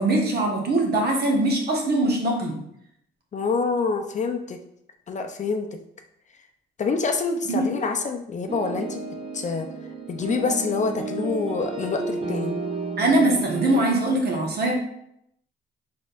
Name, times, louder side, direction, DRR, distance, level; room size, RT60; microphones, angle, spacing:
voice 1, 0.0-2.5 7.5-7.9 13.0-14.7, right 2 dB, 55° right, -1 dB, 1.1 m, -22 dB
voice 2, 3.3-4.6 5.1-5.7 6.8-9.1 9.3-9.7 10.1-12.5, left 4 dB, 40° left, 5 dB, 0.5 m, -26 dB
sound 1, 8.5-13.8, right 3 dB, 25° right, 0.6 m, -32 dB
4.2 x 3.6 x 2.4 m, 0.76 s
cardioid pair, 90°, 20 cm